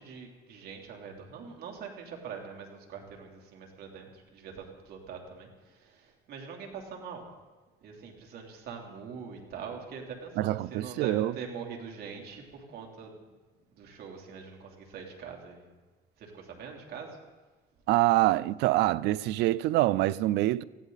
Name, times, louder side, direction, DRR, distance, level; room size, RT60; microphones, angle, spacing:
voice 1, 0.0-7.3 7.8-13.2 13.7-15.7 16.2-17.2, right 6 dB, 65° right, 3.3 m, -43 dB
voice 2, 10.4-11.3 17.9-20.6, right 16 dB, 85° right, 0.5 m, -25 dB
20.0 x 15.5 x 4.0 m
cardioid pair, 110°, 17 cm